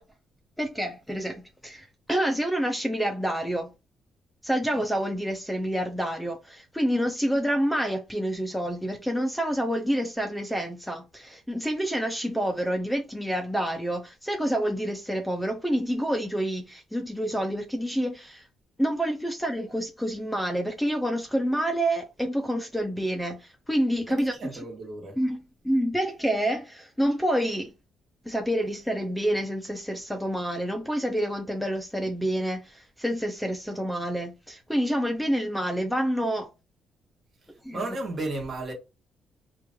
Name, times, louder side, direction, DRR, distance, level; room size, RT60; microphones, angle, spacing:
voice 1, 0.6-3.7 4.4-18.4 18.8-24.3 25.2-27.7 28.3-36.5 37.6-37.9, equal, ahead, 0.6 m, -28 dB
voice 2, 24.1-25.2 37.7-38.7, right 2 dB, 45° right, 1.3 m, -34 dB
3.1 x 2.5 x 3.5 m
cardioid pair, 90°, 0 cm